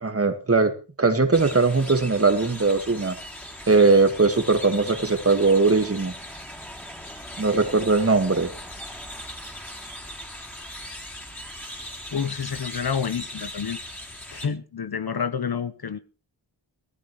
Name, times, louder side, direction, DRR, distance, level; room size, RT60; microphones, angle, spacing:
voice 1, 0.0-3.2 3.7-6.1 7.4-8.5, right 3 dB, 35° right, 1.8 m, -20 dB
sound 1, 1.3-14.5, left 1 dB, 5° left, 3.5 m, -39 dB
voice 2, 12.1-13.8 14.3-16.0, left 7 dB, 60° left, 1.1 m, -28 dB
19.5 x 14.5 x 3.2 m
wide cardioid pair, 100°, 43 cm